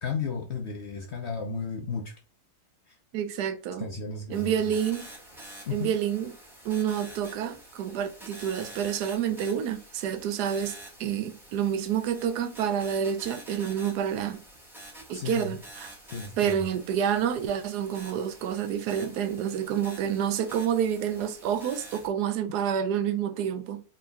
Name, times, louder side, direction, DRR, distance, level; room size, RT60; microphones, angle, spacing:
voice 1, 0.0-2.1 2.9-3.0 3.8-4.7 5.6-5.9 15.1-15.6 16.1-16.7, left 5 dB, 55° left, 0.8 m, -34 dB
voice 2, 3.1-3.8 4.3-5.1 5.7-6.3 6.6-14.4 15.1-15.9 16.4-23.8, right 9 dB, 80° right, 1.1 m, -28 dB
sound 1, 4.3-22.1, right 1 dB, ahead, 1.6 m, -48 dB
4.0 x 3.5 x 2.2 m
omnidirectional pair, 1.8 m